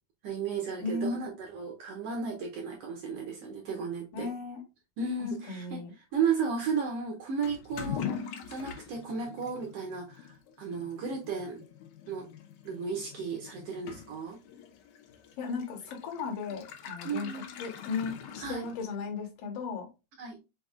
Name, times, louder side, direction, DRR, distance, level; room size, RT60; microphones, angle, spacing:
voice 1, 0.2-4.3 5.0-5.8 6.1-8.0 8.5-11.6 12.1-12.3 12.6-14.4 17.0-17.6 18.4-18.7 20.2-20.4, right 5 dB, 75° right, 1.5 m, -34 dB
voice 2, 0.8-1.2 4.1-4.6 5.5-5.9 7.9-8.0 15.4-19.9, left 4 dB, 60° left, 1.9 m, -36 dB
Toilet flush / Liquid, 7.4-19.1, left 8 dB, 80° left, 2.2 m, -43 dB
5.7 x 3.9 x 2.3 m
omnidirectional pair, 3.5 m